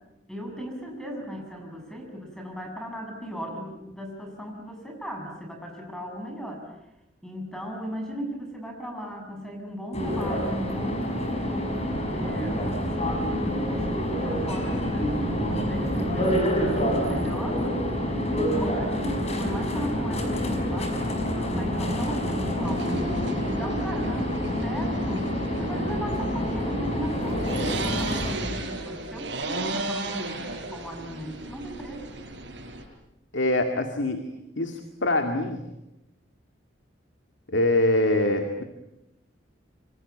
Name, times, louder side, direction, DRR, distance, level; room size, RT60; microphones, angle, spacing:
voice 1, 0.3-6.6 7.2-23.1 23.4-32.2, equal, 5° left, 2 dB, 7.4 m, -37 dB
sound 1, 9.9-28.4, equal, 35° left, 5.7 m, -28 dB
sound 2, 11.9-28.6, equal, 50° right, 4.9 m, -35 dB
sound 3, 22.6-32.8, right 2 dB, 70° right, 7.8 m, -36 dB
voice 2, 33.3-34.2 34.6-35.6 37.5-38.6, left 1 dB, 75° left, 5 dB, 2.3 m, -24 dB
27.5 x 25.0 x 8.6 m, 0.92 s
head